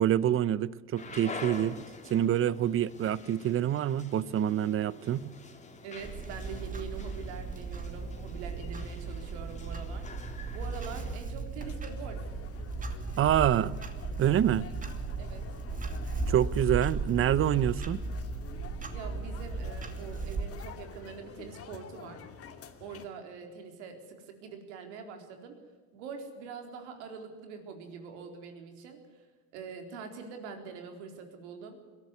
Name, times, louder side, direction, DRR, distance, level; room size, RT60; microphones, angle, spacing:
voice 1, 0.0-1.8 2.1-5.3 13.2-13.7 14.2-14.7 16.3-18.0, right 11 dB, 40° right, 19 dB, 0.8 m, -26 dB
sound 1, 1.0-11.2, left 3 dB, 20° left, 2.8 m, -47 dB
voice 2, 5.8-10.1 10.5-12.3 15.2-15.5 18.9-22.2 22.8-25.6 25.9-29.3 29.5-31.8, right 5 dB, 85° right, 5 dB, 4.1 m, -44 dB
Clock, 6.0-20.5, right 3 dB, 25° right, 2.7 m, -36 dB
sound 2, 11.6-23.0, left 7 dB, 45° left, 2.4 m, -48 dB
22.0 x 13.5 x 9.5 m, 1.4 s
supercardioid pair, 105°, 33 cm